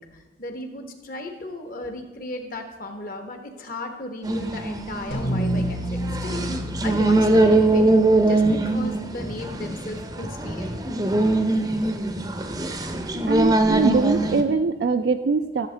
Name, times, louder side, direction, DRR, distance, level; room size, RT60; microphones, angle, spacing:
voice 1, 0.0-6.4 6.8-7.9 8.3-10.8, left 1 dB, 50° left, 5 dB, 1.1 m, -35 dB
sound 1, 4.2-14.4, right 2 dB, 20° right, 0.6 m, -22 dB
sound 2, 5.1-9.7, equal, 75° left, 2.5 m, -30 dB
voice 2, 13.3-15.7, right 4 dB, 65° right, 6 dB, 0.4 m, -22 dB
13.5 x 7.2 x 3.3 m, 1.2 s
head